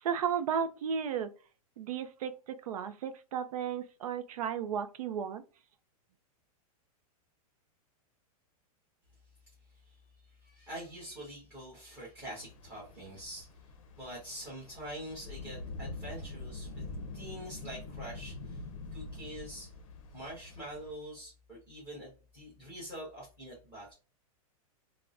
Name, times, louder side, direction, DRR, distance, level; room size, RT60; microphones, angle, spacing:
voice 1, 0.0-1.3 1.8-5.4, right 7 dB, 75° right, 0.5 m, -34 dB
voice 2, 10.3-13.5 14.0-16.9 17.1-18.6 18.9-19.7 20.1-23.9, right 1 dB, 10° right, 1.2 m, -45 dB
sound 1, 12.4-20.9, left 3 dB, 60° left, 0.6 m, -45 dB
3.4 x 2.1 x 2.4 m
supercardioid pair, 180°, 19 cm